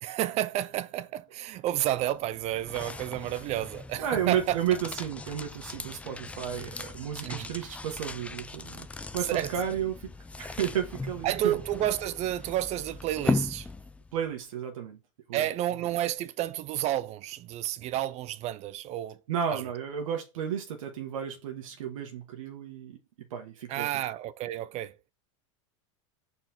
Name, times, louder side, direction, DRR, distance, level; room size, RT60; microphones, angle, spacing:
voice 1, 0.0-4.6 7.2-7.5 9.3-9.5 11.2-13.7 15.3-19.2 19.5-19.6 23.7-24.9, right 13 dB, 40° right, 0.6 m, -31 dB
sound 1, 2.0-14.2, left 3 dB, 10° left, 0.4 m, -38 dB
voice 2, 4.0-8.9 9.1-9.9 10.4-11.5 14.1-15.0 15.3-15.4 19.3-23.0 23.3-23.9, right 9 dB, 85° right, 1.5 m, -32 dB
5.8 x 4.4 x 4.4 m
supercardioid pair, 115°, 17 cm